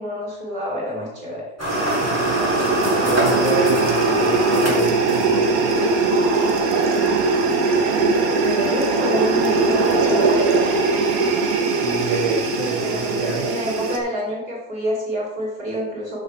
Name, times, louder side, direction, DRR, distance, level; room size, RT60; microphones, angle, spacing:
voice 1, 0.0-1.5 7.9-10.5 12.6-16.2, equal, 30° right, -4 dB, 3.4 m, -28 dB
sound 1, 1.6-5.6, equal, 10° right, 2.4 m, -24 dB
sound 2, 1.7-14.0, right 3 dB, 60° right, 1.5 m, -20 dB
voice 2, 3.0-5.6 11.8-13.5, right 3 dB, 80° right, -4 dB, 2.8 m, -27 dB
12.5 x 6.6 x 3.4 m, 0.96 s
omnidirectional pair, 1.8 m